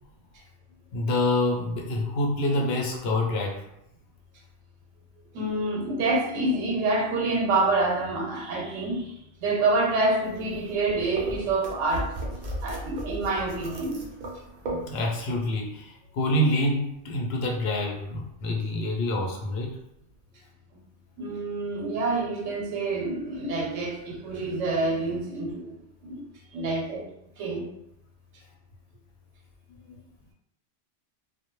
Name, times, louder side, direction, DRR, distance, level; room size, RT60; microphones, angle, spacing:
voice 1, 0.9-3.6 14.7-19.8 29.9-30.0, left 1 dB, 65° left, 0 dB, 0.7 m, -27 dB
voice 2, 5.3-12.1 12.6-14.0 21.2-25.8 26.0-26.2 26.5-27.0 27.4-27.7, right 2 dB, 85° right, 0 dB, 0.9 m, -27 dB
sound 1, 10.2-15.4, right 1 dB, 60° right, 0.5 m, -37 dB
2.2 x 2.0 x 2.9 m, 0.79 s
omnidirectional pair, 1.3 m